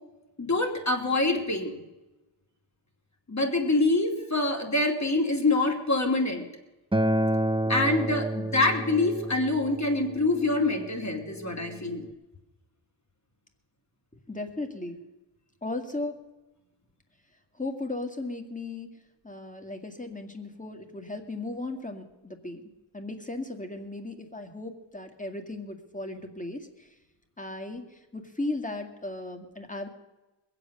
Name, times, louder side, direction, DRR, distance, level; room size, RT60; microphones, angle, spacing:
voice 1, 0.4-1.8 3.3-6.5 7.7-12.1, left 2 dB, 35° left, 3 dB, 2.8 m, -25 dB
Acoustic guitar, 6.9-12.1, right 1 dB, 10° right, 0.8 m, -30 dB
voice 2, 14.3-15.0 15.6-16.2 17.6-18.9 19.2-22.6 22.9-26.9 27.4-29.9, left 2 dB, 15° left, 6 dB, 2.2 m, -36 dB
21.5 x 7.9 x 6.6 m, 1.1 s
cardioid pair, 60°, 46 cm